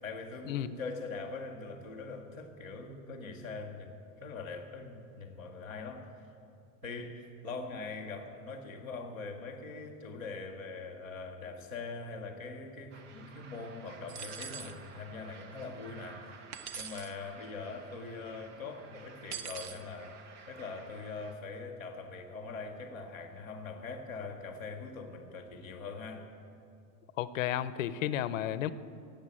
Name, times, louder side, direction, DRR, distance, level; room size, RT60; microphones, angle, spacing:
voice 1, 0.0-6.1 6.8-20.2 20.5-26.3, left 4 dB, 10° right, -5 dB, 0.3 m, -42 dB
sound 1, 12.9-21.4, right 5 dB, 55° right, 1.2 m, -54 dB
sound 2, 14.1-14.8 16.5-17.1 19.3-19.8, right 7 dB, 85° right, 1.2 m, -42 dB
voice 2, 27.2-28.7, left 11 dB, 60° left, 15 dB, 0.7 m, -32 dB
17.5 x 8.1 x 8.9 m, 2.6 s
supercardioid pair, 175°, 44 cm